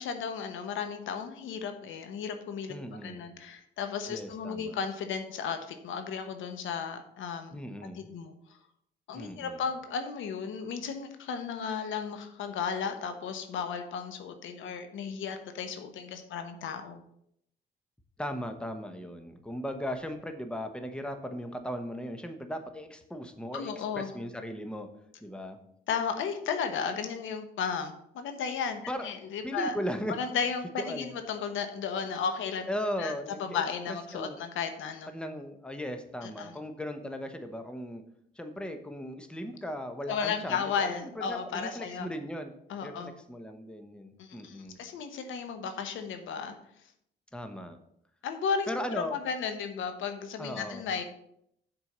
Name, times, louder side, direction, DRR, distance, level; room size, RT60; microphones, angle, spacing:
voice 1, 0.0-2.7 3.0-7.6 7.9-8.6 9.1-17.0 23.5-24.1 25.9-29.7 30.1-32.7 33.0-33.1 33.4-35.1 36.2-36.6 40.1-42.1 42.7-43.1 44.2-46.5 48.2-51.0, left 6 dB, 80° left, 7 dB, 1.0 m, -34 dB
voice 2, 2.7-3.2 4.1-4.8 7.5-8.1 9.1-9.6 18.2-24.9 25.2-25.6 28.9-29.1 29.4-30.1 30.8-31.1 32.7-33.6 34.1-34.4 35.1-38.0 38.4-42.5 42.8-44.8 47.3-47.8 48.7-49.2 50.4-50.9, equal, 5° left, 7 dB, 1.0 m, -37 dB
6.9 x 4.6 x 6.6 m, 0.73 s
cardioid pair, 90°, 20 cm